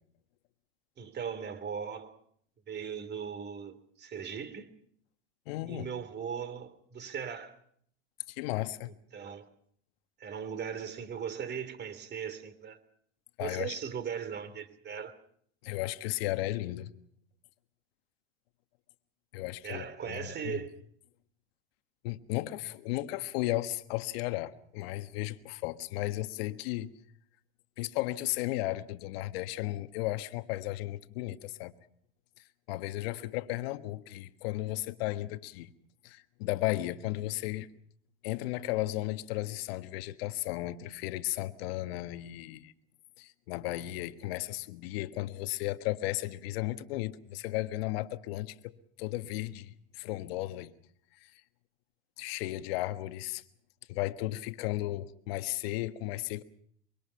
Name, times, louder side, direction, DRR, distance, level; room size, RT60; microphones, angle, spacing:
voice 1, 1.0-2.2 2.7-4.7 5.7-7.6 9.1-9.5 10.2-12.8 13.4-15.2 19.6-20.8, right 7 dB, 30° right, 3.0 m, -38 dB
voice 2, 5.5-5.9 8.3-8.9 13.4-13.7 15.6-16.9 19.3-20.6 22.0-26.9 27.8-31.7 32.7-35.7 36.0-37.7 38.2-42.7 43.2-50.7 51.2-51.3 52.2-53.4 53.9-56.4, left 17 dB, 65° left, 1.5 m, -35 dB
24.5 x 23.5 x 5.7 m
hypercardioid pair, 95°, 32 cm